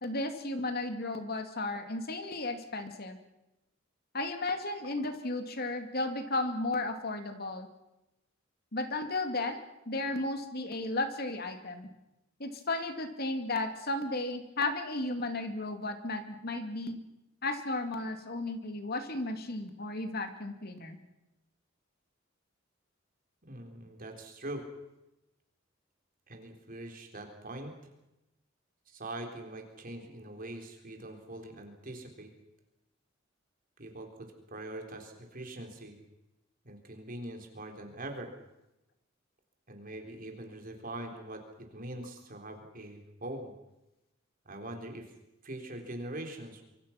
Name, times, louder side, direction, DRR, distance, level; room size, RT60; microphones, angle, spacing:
voice 1, 0.0-3.2 4.1-7.7 8.7-11.9 12.4-17.0 17.4-21.0, left 2 dB, 55° left, 7 dB, 2.5 m, -34 dB
voice 2, 23.4-24.7 26.3-27.7 28.9-32.3 33.8-36.0 36.6-38.3 39.7-41.4 41.7-43.5 44.5-45.1 45.4-46.6, right 1 dB, 45° right, 3 dB, 4.0 m, -43 dB
25.5 x 24.5 x 6.0 m, 0.94 s
head